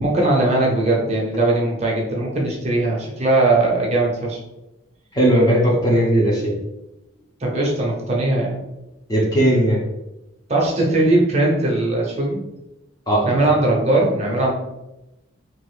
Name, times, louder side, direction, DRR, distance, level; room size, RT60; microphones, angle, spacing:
voice 1, 0.0-4.4 7.4-8.6 10.5-12.4 13.2-14.5, right 2 dB, 30° right, -2 dB, 0.7 m, -19 dB
voice 2, 5.1-6.5 9.1-9.8 13.1-13.3, right 1 dB, 20° left, -3 dB, 0.8 m, -17 dB
2.9 x 2.5 x 3.1 m, 0.95 s
head